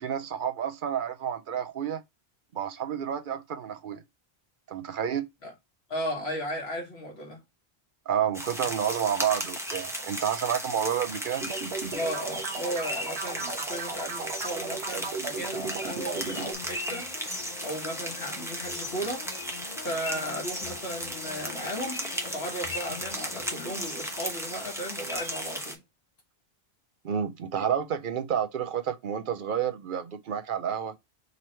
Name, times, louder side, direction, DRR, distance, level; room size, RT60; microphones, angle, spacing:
voice 1, 0.0-2.0 2.5-4.0 4.7-5.3 8.1-11.5 27.0-30.9, right 8 dB, 60° right, 0.7 m, -30 dB
voice 2, 5.9-7.4 11.9-17.1 17.6-19.3 19.8-25.8, equal, 80° left, 1.8 m, -35 dB
sound 1, 8.3-25.8, equal, 5° right, 0.7 m, -35 dB
sound 2, 11.4-16.5, right 5 dB, 85° right, 1.1 m, -36 dB
sound 3, 15.9-25.3 25.6-25.7, left 8 dB, 55° left, 0.6 m, -47 dB
4.0 x 3.1 x 4.3 m
omnidirectional pair, 1.1 m